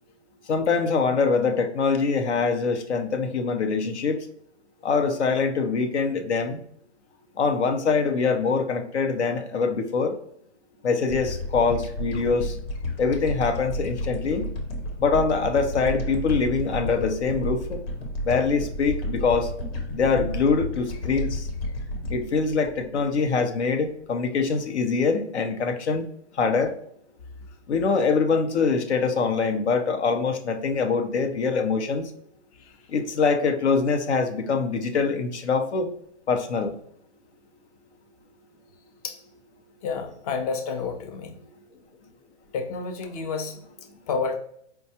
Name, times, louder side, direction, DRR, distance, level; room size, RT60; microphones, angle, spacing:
voice 1, 0.5-4.2 4.8-6.6 7.4-10.1 10.8-12.5 13.0-14.5 15.0-17.8 18.2-19.5 19.9-21.5 22.1-26.0 26.4-26.7 27.7-32.1 32.9-35.9 36.3-36.7, left 4 dB, 75° left, 5 dB, 0.7 m, -24 dB
sound 1, 11.1-23.6, left 1 dB, 55° left, 1.0 m, -32 dB
voice 2, 39.8-41.3 42.5-43.6 44.1-44.4, left 5 dB, 35° left, 5 dB, 0.6 m, -29 dB
4.6 x 2.3 x 2.7 m, 0.68 s
hypercardioid pair, 135°, 35 cm